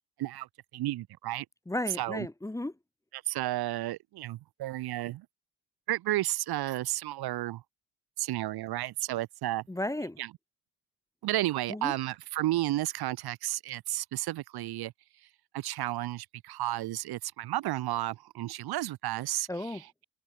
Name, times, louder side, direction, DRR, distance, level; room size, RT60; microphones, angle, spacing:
voice 1, 0.7-1.5 2.0-2.3 3.1-5.3 5.9-7.6 8.2-9.6 10.2-10.3 11.2-14.9 15.5-20.0, right 15 dB, 65° right, 0.8 m, -32 dB
voice 2, 1.7-2.7 9.7-10.2 11.7-11.9 19.5-19.8, left 1 dB, 10° left, 0.9 m, -34 dB
open air
cardioid pair, 110°, 41 cm